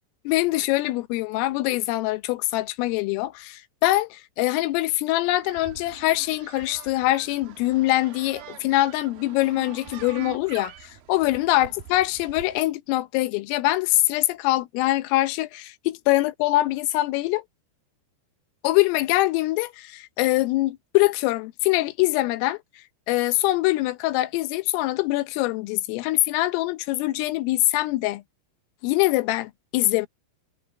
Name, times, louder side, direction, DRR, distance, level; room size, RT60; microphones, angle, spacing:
voice 1, 0.3-17.4 18.6-28.2 28.8-30.1, left 17 dB, 80° left, 3.5 m, -23 dB
sound 1, 5.2-12.6, right 10 dB, 70° right, 2.4 m, -44 dB
omnidirectional pair, 6.0 m